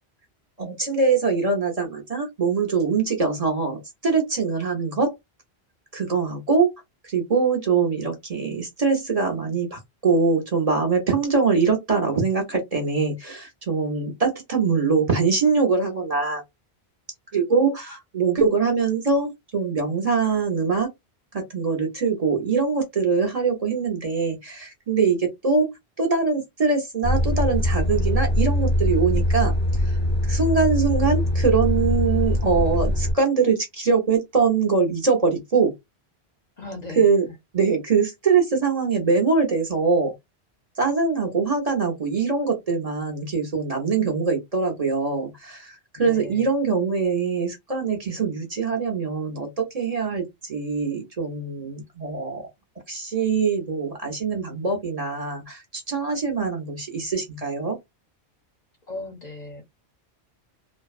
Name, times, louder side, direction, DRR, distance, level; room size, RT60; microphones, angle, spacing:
voice 1, 0.6-5.2 5.9-6.7 7.0-16.4 17.3-20.9 21.3-25.7 26.0-30.0 30.2-35.7 37.0-37.2 37.5-40.1 40.8-52.5 52.9-57.8, right 4 dB, 40° right, 0.7 m, -23 dB
Truck, 27.0-33.1, left 1 dB, 10° left, 0.7 m, -22 dB
voice 2, 36.6-37.3 45.9-46.5 58.9-59.6, left 2 dB, 50° left, 0.6 m, -37 dB
2.6 x 2.1 x 2.3 m
omnidirectional pair, 1.1 m